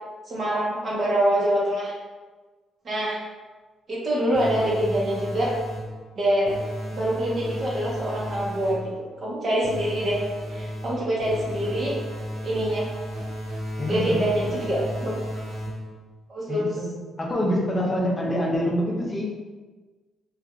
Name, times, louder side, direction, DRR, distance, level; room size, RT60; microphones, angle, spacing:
voice 1, 0.3-1.9 2.8-3.2 3.9-5.5 6.2-6.5 6.9-10.2 10.5-11.9 12.4-12.9 13.9-15.1 16.3-16.7, right 1 dB, 45° right, -5 dB, 0.9 m, -25 dB
sound 1, 4.3-6.0 6.4-8.9 9.6-16.0, equal, 80° right, 0.7 m, -33 dB
voice 2, 13.8-14.5 16.5-16.9 17.2-19.3, equal, 25° left, -2 dB, 0.6 m, -26 dB
2.7 x 2.4 x 2.4 m, 1.3 s
cardioid pair, 90°, 0 cm